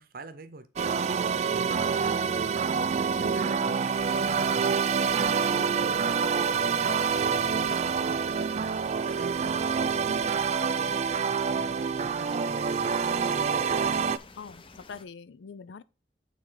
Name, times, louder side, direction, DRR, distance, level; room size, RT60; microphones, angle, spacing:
voice 1, 0.0-4.0 4.4-7.0 7.3-8.7 9.0-13.2, right 2 dB, 55° right, 0.8 m, -45 dB
sound 1, 0.8-14.2, right 6 dB, 40° right, 0.3 m, -27 dB
voice 2, 3.2-3.8 14.4-15.8, left 5 dB, 85° left, 0.4 m, -44 dB
sound 2, 3.9-15.0, left 3 dB, 30° left, 0.6 m, -51 dB
9.1 x 3.7 x 3.9 m
head